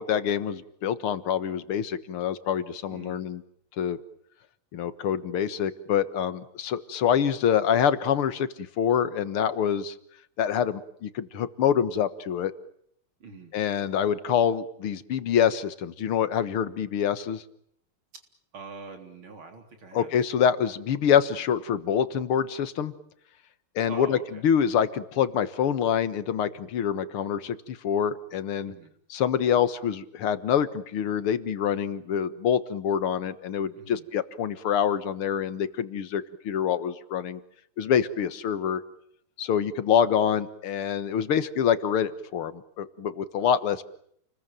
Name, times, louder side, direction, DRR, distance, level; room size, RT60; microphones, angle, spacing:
voice 1, 0.0-3.4 3.8-4.0 4.7-9.9 10.4-12.5 13.5-17.4 19.9-22.9 23.8-24.2 24.4-28.7 29.1-37.4 37.8-38.8 39.4-43.8, left 8 dB, 85° left, 14 dB, 2.3 m, -26 dB
voice 2, 2.9-3.2 13.2-13.5 18.1-18.2 18.5-20.1 23.9-24.4 28.7-28.9 33.7-34.1, right 4 dB, 70° right, 5 dB, 4.5 m, -44 dB
29.5 x 21.0 x 9.1 m, 0.69 s
omnidirectional pair, 2.3 m